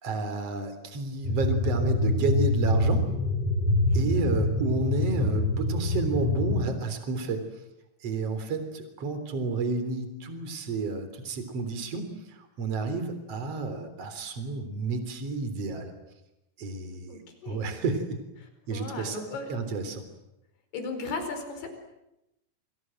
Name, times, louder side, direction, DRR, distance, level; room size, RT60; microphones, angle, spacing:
voice 1, 0.0-3.1 3.9-7.4 8.0-15.9 16.6-17.2 17.4-18.2 18.7-19.2 19.5-20.0, right 3 dB, 35° right, 9 dB, 4.3 m, -31 dB
sound 1, 1.2-6.6, left 2 dB, 35° left, 9.3 m, -25 dB
voice 2, 17.1-17.6 18.7-19.6 20.7-21.7, left 3 dB, 65° left, 7 dB, 6.7 m, -36 dB
29.5 x 25.5 x 7.8 m, 0.87 s
omnidirectional pair, 5.0 m